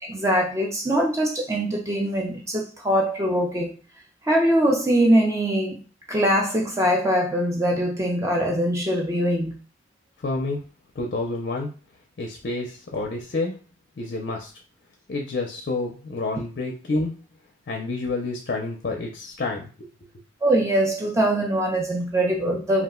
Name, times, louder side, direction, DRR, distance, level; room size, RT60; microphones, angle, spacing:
voice 1, 0.0-3.7 4.2-9.6 20.4-22.8, right 1 dB, 15° right, 0 dB, 0.4 m, -22 dB
voice 2, 10.2-10.6 11.0-11.7 12.2-13.6 14.0-14.5 15.1-17.2 17.7-19.9, left 2 dB, 50° left, 1 dB, 0.4 m, -29 dB
2.4 x 2.1 x 3.6 m, 0.35 s
head